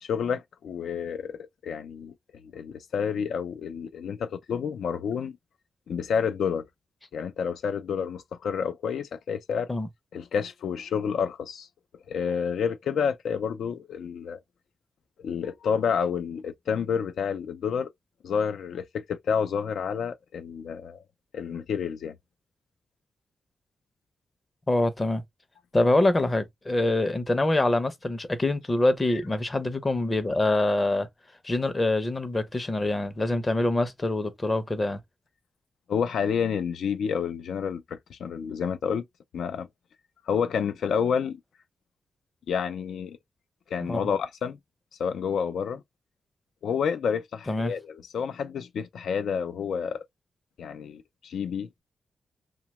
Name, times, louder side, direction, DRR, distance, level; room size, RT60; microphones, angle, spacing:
voice 1, 0.0-2.1 2.4-5.4 5.9-6.7 7.1-9.7 10.1-11.7 12.1-14.4 15.2-17.9 18.2-21.0 21.3-22.2 29.1-29.2 35.9-39.1 39.3-39.7 40.3-41.4 42.5-43.2 43.7-44.6 45.0-45.8 46.6-50.0 50.6-51.7, left 7 dB, 85° left, 0.4 m, -29 dB
voice 2, 24.7-25.2 25.7-31.1 31.4-35.0 43.9-44.0 47.5-47.7, left 2 dB, 25° left, 0.6 m, -25 dB
2.9 x 2.2 x 2.9 m
wide cardioid pair, 110°, 0 cm